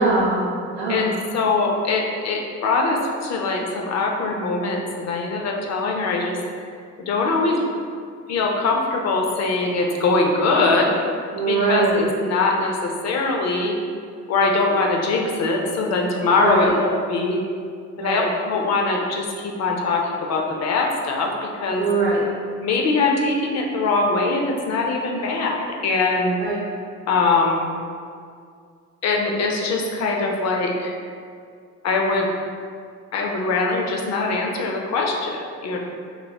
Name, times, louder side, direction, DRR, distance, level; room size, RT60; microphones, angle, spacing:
voice 1, 0.0-1.1 11.3-12.1 16.4-16.7 18.0-18.3 21.8-22.2 26.4-26.6, right 3 dB, 90° right, -8 dB, 0.6 m, -22 dB
voice 2, 0.9-6.4 7.0-7.6 8.3-10.9 11.5-13.8 14.3-17.4 18.0-21.9 22.6-26.6 27.1-27.8 29.0-30.9 31.8-32.3 33.1-35.8, left 3 dB, 60° left, 1 dB, 0.5 m, -22 dB
3.0 x 3.0 x 2.2 m, 2.2 s
cardioid pair, 90°, 30 cm